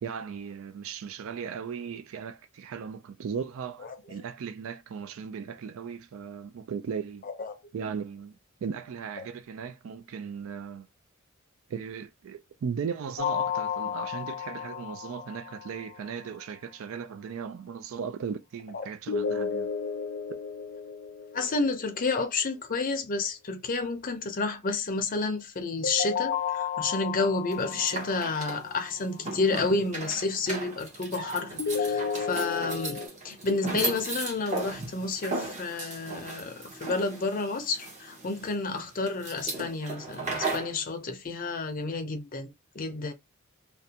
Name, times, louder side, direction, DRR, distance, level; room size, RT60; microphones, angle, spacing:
voice 1, 0.0-7.2 7.7-10.9 11.7-19.7, right 6 dB, 65° right, 0.3 m, -37 dB
voice 2, 7.2-7.6 9.2-9.3 18.7-18.9 21.3-43.1, left 3 dB, 40° left, 0.5 m, -30 dB
sound 1, 13.2-16.1 19.1-22.1 25.8-29.0 31.6-33.1, left 6 dB, 85° left, 0.5 m, -33 dB
sound 2, 27.5-40.8, right 3 dB, 30° right, 0.8 m, -36 dB
2.5 x 2.1 x 2.7 m
head